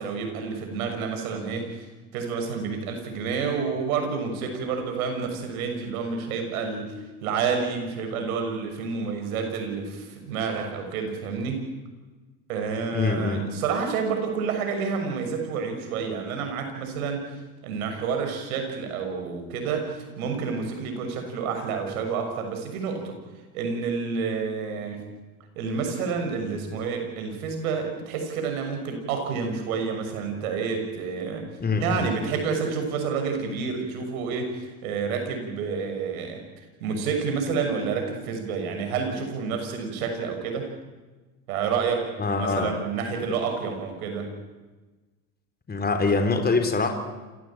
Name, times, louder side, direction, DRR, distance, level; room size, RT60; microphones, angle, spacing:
voice 1, 0.0-1.7 2.1-6.9 7.2-11.6 12.5-17.2 17.6-23.2 23.5-25.0 25.5-31.5 31.8-36.4 36.8-40.7 41.5-44.3, right 5 dB, 80° right, 5 dB, 6.7 m, -29 dB
voice 2, 12.9-13.4 31.6-32.1 42.2-42.7 45.7-46.9, left 3 dB, 20° left, 6 dB, 4.0 m, -24 dB
28.0 x 17.0 x 8.9 m, 1.2 s
hypercardioid pair, 85°, 42 cm